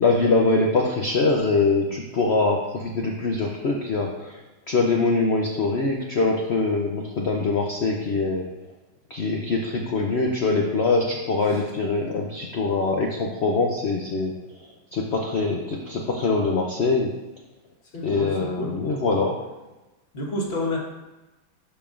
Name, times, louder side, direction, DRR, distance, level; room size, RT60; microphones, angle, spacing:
voice 1, 0.0-4.4 4.7-8.4 9.1-14.3 14.9-17.1 18.0-19.4, left 3 dB, 70° left, 0 dB, 0.6 m, -23 dB
voice 2, 17.9-18.8 20.1-20.8, left 1 dB, 35° left, -2 dB, 1.4 m, -29 dB
11.5 x 5.1 x 2.5 m, 1.1 s
omnidirectional pair, 2.1 m